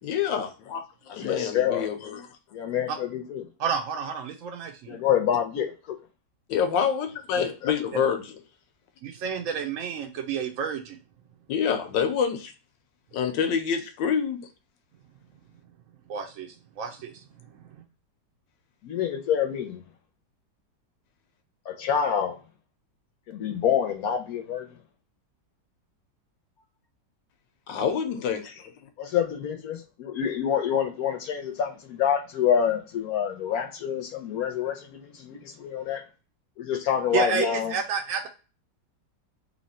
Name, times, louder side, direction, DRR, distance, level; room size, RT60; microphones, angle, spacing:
voice 1, 0.0-2.3 6.5-8.2 11.5-12.5 13.1-14.4 27.7-28.7, left 7 dB, 90° left, 1.4 m, -27 dB
voice 2, 1.1-1.9 2.5-3.4 4.9-6.0 7.4-7.7 18.8-19.8 21.7-22.4 23.3-24.7 29.0-36.0 36.6-37.7, left 8 dB, 70° left, 1.0 m, -27 dB
voice 3, 3.6-5.0 7.9-8.0 9.0-11.0 16.1-17.8 37.1-38.3, right 6 dB, 75° right, 0.7 m, -30 dB
3.1 x 2.9 x 4.1 m
omnidirectional pair, 1.9 m